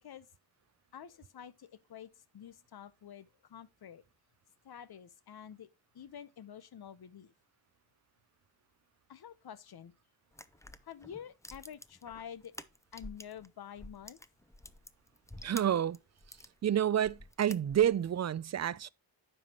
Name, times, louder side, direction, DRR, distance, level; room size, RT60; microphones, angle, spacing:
voice 1, 0.9-4.0 4.6-5.7 5.9-7.3 9.1-9.9 10.8-12.5 12.9-14.2, left 9 dB, 55° left, 0.8 m, -49 dB
sound 1, 10.3-13.5 13.7-16.5 17.0-18.1, left 1 dB, 5° left, 0.6 m, -49 dB
voice 2, 15.4-16.0 16.6-18.9, right 10 dB, 40° right, 0.4 m, -29 dB
9.3 x 5.6 x 2.9 m
cardioid pair, 55°, 45 cm